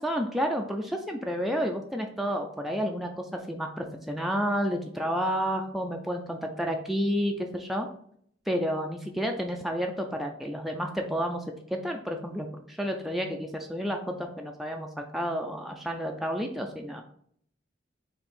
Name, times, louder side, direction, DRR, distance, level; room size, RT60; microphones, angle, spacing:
voice 1, 0.0-7.9 8.5-11.4 11.7-17.0, equal, ahead, 2 dB, 0.3 m, -30 dB
4.4 x 2.8 x 4.2 m, 0.64 s
head